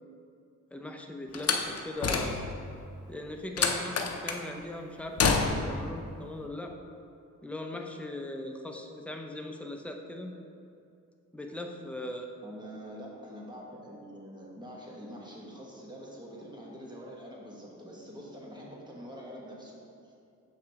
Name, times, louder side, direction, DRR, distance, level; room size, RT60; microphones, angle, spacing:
voice 1, 0.7-2.4 3.1-6.8 7.4-10.3 11.3-12.3, left 1 dB, 5° left, 2 dB, 0.6 m, -39 dB
Slam, 1.3-2.7 3.6-4.5 5.2-5.8, left 5 dB, 55° left, 0.6 m, -28 dB
voice 2, 12.4-19.8 20.0-20.1, equal, 15° right, -4 dB, 1.5 m, -45 dB
7.0 x 5.0 x 3.5 m, 2.5 s
cardioid pair, 75°, 31 cm